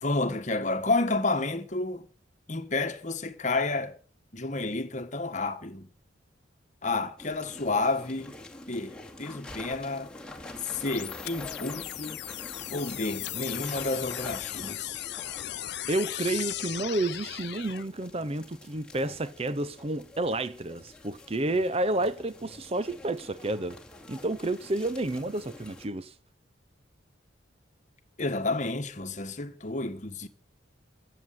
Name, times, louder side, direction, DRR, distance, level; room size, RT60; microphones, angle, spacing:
voice 1, 0.0-2.1 2.5-4.0 4.3-5.9 6.8-8.3 8.7-10.1 10.6-12.2 12.7-15.0 28.2-30.3, left 3 dB, 40° left, 1.4 m, -30 dB
sound 1, 7.2-25.9, left 2 dB, 5° left, 2.3 m, -46 dB
sound 2, 10.9-17.9, left 14 dB, 60° left, 0.6 m, -37 dB
voice 2, 15.9-23.8 24.1-26.1, right 2 dB, 30° right, 0.6 m, -30 dB
15.0 x 7.8 x 9.1 m
head